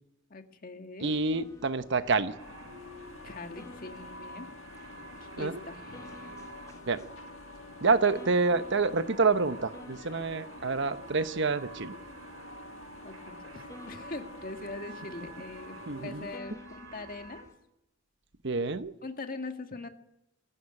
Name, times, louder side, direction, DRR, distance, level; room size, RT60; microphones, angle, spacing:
voice 1, 0.3-1.1 3.2-6.5 13.0-17.5 19.0-19.9, left 2 dB, 45° left, 6 dB, 1.8 m, -42 dB
sound 1, 1.0-17.6, left 1 dB, 15° left, 2.3 m, -54 dB
voice 2, 1.0-2.3 5.4-5.6 6.9-7.0 7.8-11.9 15.9-16.3 18.4-18.9, right 4 dB, 60° right, 11 dB, 1.0 m, -27 dB
sound 2, 1.9-17.4, right 3 dB, 80° right, 5.9 m, -51 dB
sound 3, 2.4-16.4, left 1 dB, 85° left, 1.5 m, -48 dB
22.5 x 14.5 x 10.0 m, 0.87 s
head